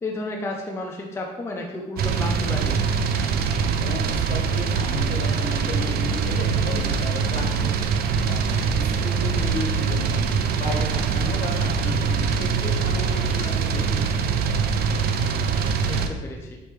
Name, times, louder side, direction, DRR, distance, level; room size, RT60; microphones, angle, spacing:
voice 1, 0.0-2.9 15.8-16.6, left 2 dB, 15° left, 0 dB, 0.5 m, -32 dB
sound 1, 2.0-16.1, right 5 dB, 65° right, 0.4 m, -23 dB
voice 2, 3.8-7.7 8.3-8.4 8.7-10.2 10.6-14.4, left 2 dB, 60° left, 0 dB, 1.3 m, -34 dB
4.2 x 3.2 x 3.3 m, 1.1 s
cardioid pair, 110°, 17 cm